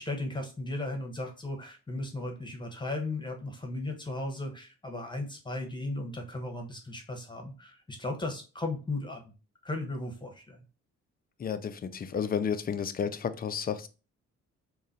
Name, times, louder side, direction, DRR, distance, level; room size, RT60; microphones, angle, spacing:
voice 1, 0.0-9.2 9.6-10.6, left 2 dB, 15° left, 3 dB, 1.1 m, -36 dB
voice 2, 11.4-13.9, left 7 dB, 30° left, 10 dB, 0.5 m, -32 dB
3.8 x 2.3 x 4.0 m, 0.32 s
cardioid pair, 90°, 30 cm